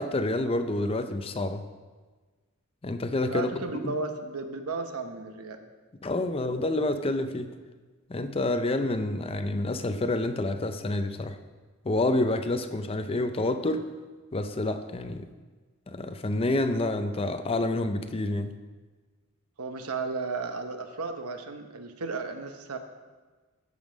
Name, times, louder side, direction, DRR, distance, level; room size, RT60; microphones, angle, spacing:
voice 1, 0.0-1.6 2.8-3.5 3.8-3.9 6.0-7.6 8.1-11.4 11.8-13.9 14.3-15.3 15.9-18.5, left 2 dB, 25° left, 9 dB, 0.5 m, -28 dB
voice 2, 3.3-5.7 19.6-22.8, right 4 dB, 90° right, 6 dB, 0.9 m, -34 dB
13.5 x 5.3 x 5.1 m, 1.4 s
head